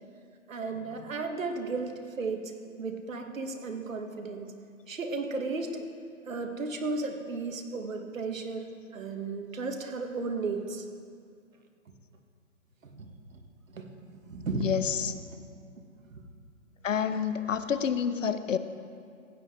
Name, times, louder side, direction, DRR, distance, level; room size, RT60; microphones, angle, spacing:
voice 1, 0.5-1.9 2.2-2.4 2.8-4.5 4.9-5.8 6.3-8.6 8.9-10.8 12.9-13.4 13.7-14.7 16.1-16.2, right 3 dB, 70° right, 4 dB, 1.6 m, -34 dB
voice 2, 14.6-15.1 16.8-18.6, left 7 dB, 65° left, 12 dB, 0.7 m, -28 dB
15.5 x 9.7 x 3.7 m, 2.3 s
hypercardioid pair, 160°, 40 cm